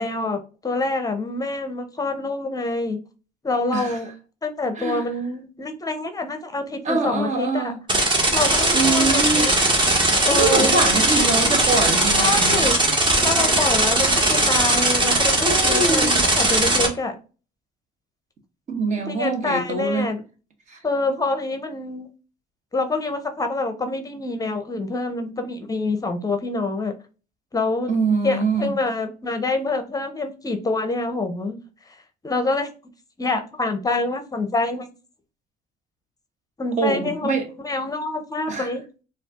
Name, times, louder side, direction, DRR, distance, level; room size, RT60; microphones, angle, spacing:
voice 1, 0.0-3.0 3.4-4.1 4.4-7.7 8.3-9.5 10.3-10.9 12.2-12.8 13.2-17.2 19.1-20.2 20.8-22.1 22.7-26.9 27.5-28.0 28.2-31.6 31.9-32.0 32.2-32.7 33.2-34.9 36.6-37.3 37.6-38.8, left 2 dB, 20° left, 0.7 m, -26 dB
voice 2, 6.8-7.8 8.7-9.5 10.3-12.7 15.4-16.1 18.7-20.1 20.7-20.8 27.9-28.7 36.8-37.5 38.5-38.7, right 3 dB, 45° right, 1.2 m, -24 dB
sound 1, 7.9-16.9, right 1 dB, 30° right, 1.3 m, -19 dB
4.3 x 2.4 x 3.5 m
cardioid pair, 110°, 17 cm